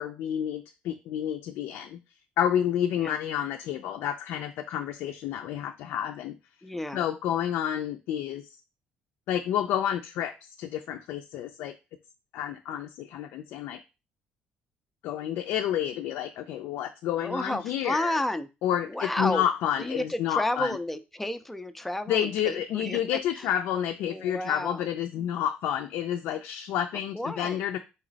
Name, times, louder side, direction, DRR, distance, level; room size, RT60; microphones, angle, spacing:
voice 1, 0.0-2.0 2.4-6.3 6.9-8.5 9.3-11.7 12.3-13.8 15.0-18.2 18.6-20.8 22.1-27.8, left 10 dB, 75° left, 5 dB, 0.4 m, -30 dB
voice 2, 6.6-7.0 17.2-18.5 18.8-19.4 19.8-23.5 24.1-24.9 27.1-27.6, left 1 dB, 5° left, 10 dB, 0.3 m, -31 dB
4.0 x 3.0 x 3.9 m, 0.28 s
cardioid pair, 160°, 4 cm